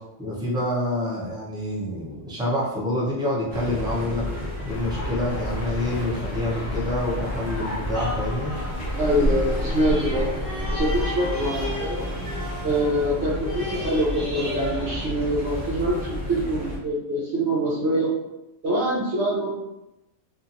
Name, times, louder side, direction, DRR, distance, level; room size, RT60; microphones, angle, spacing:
voice 1, 0.2-4.3 4.7-8.5, left 1 dB, 5° right, -6 dB, 0.3 m, -27 dB
sound 1, 3.5-16.8, left 1 dB, 25° right, 1.0 m, -32 dB
sound 2, 4.7-11.0, left 1 dB, 75° left, 0.9 m, -31 dB
sound 3, 7.9-15.8 16.3-16.4, equal, 45° right, 1.3 m, -35 dB
voice 2, 9.0-10.3 10.7-12.1 12.6-18.1 18.6-19.5, right 1 dB, 65° right, -5 dB, 0.9 m, -24 dB
2.8 x 2.5 x 2.5 m, 0.93 s
omnidirectional pair, 1.3 m